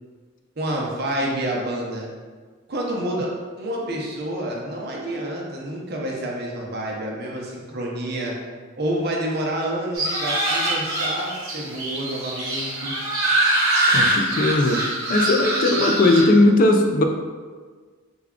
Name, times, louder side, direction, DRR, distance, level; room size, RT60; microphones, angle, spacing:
voice 1, 0.6-2.1 2.7-3.3 3.6-8.3 8.8-12.9, right 1 dB, 50° right, -2 dB, 0.6 m, -28 dB
sound 1, 9.9-16.2, right 1 dB, 75° right, 1.1 m, -23 dB
voice 2, 13.9-14.8 15.1-17.0, left 2 dB, 40° left, 4 dB, 0.3 m, -18 dB
3.4 x 2.3 x 3.6 m, 1.5 s
head